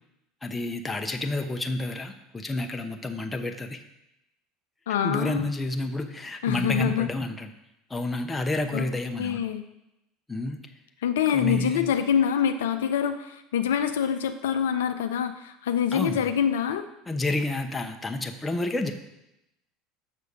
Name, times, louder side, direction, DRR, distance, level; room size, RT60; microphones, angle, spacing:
voice 1, 0.4-3.8 5.0-7.5 7.9-9.4 10.3-10.6 11.3-11.9 15.9-16.3 17.1-18.9, left 2 dB, 15° left, 4 dB, 0.9 m, -30 dB
voice 2, 4.9-5.5 6.4-7.1 8.7-8.9 9.2-9.6 11.0-16.8, left 8 dB, 75° left, 8 dB, 0.5 m, -25 dB
6.7 x 6.5 x 4.9 m, 0.88 s
hypercardioid pair, 75°, 0 cm